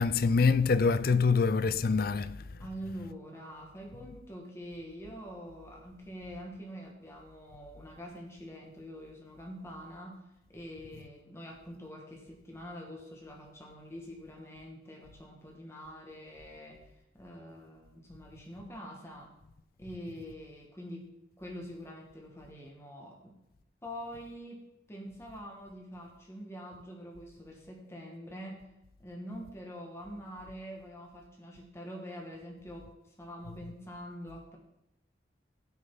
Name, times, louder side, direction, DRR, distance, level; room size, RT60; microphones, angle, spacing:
voice 1, 0.0-2.4, left 4 dB, 55° left, 0.4 m, -25 dB
voice 2, 2.6-16.9 17.1-19.3 19.8-21.1 21.4-23.4 23.8-28.7 29.0-32.9 33.2-34.6, equal, 15° left, 2.1 m, -45 dB
16.5 x 6.4 x 4.0 m
head